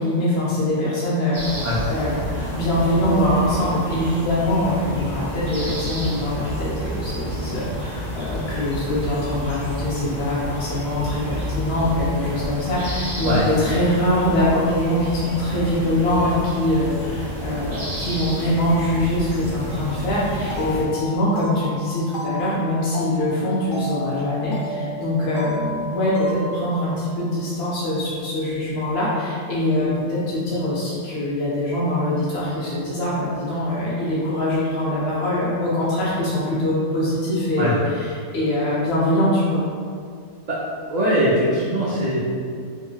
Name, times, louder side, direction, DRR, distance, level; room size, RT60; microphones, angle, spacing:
voice 1, 0.0-39.6, left 1 dB, 65° left, -8 dB, 0.7 m, -23 dB
sound 1, 1.3-20.8, equal, ahead, 1.1 m, -30 dB
sound 2, 20.5-27.9, left 1 dB, 85° left, 1.0 m, -33 dB
voice 2, 40.9-42.2, equal, 80° right, -8 dB, 0.3 m, -21 dB
2.7 x 2.7 x 2.3 m, 2.2 s
omnidirectional pair, 1.3 m